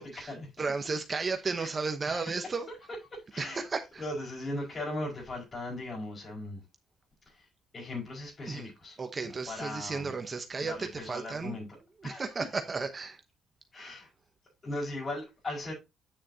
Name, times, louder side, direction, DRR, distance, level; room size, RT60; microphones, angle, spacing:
voice 1, 0.0-2.7 3.4-4.0 8.5-8.7 9.0-11.6 12.0-13.2, right 4 dB, 35° right, 0.9 m, -34 dB
voice 2, 3.1-3.6 4.0-6.6 7.2-7.5 7.7-9.0 9.5-10.1 10.6-11.7 12.0-12.2 13.7-14.1 14.6-15.7, left 1 dB, 35° left, 5.7 m, -38 dB
8.9 x 7.3 x 2.8 m
cardioid pair, 90°, 0 cm